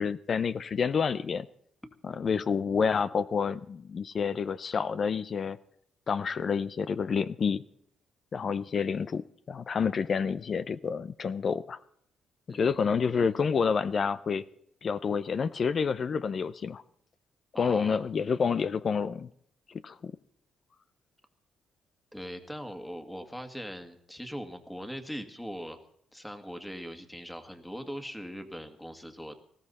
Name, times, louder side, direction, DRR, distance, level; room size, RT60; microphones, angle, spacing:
voice 1, 0.0-1.5 2.0-5.6 6.1-7.6 8.3-11.8 12.5-14.4 14.8-16.8 17.6-19.3 19.7-20.1, left 6 dB, 45° left, 16 dB, 0.5 m, -29 dB
voice 2, 12.5-12.8 17.5-18.0 22.1-25.8 26.1-29.4, equal, 5° left, 7 dB, 2.0 m, -41 dB
19.5 x 15.0 x 4.2 m, 0.69 s
cardioid pair, 90°, 0 cm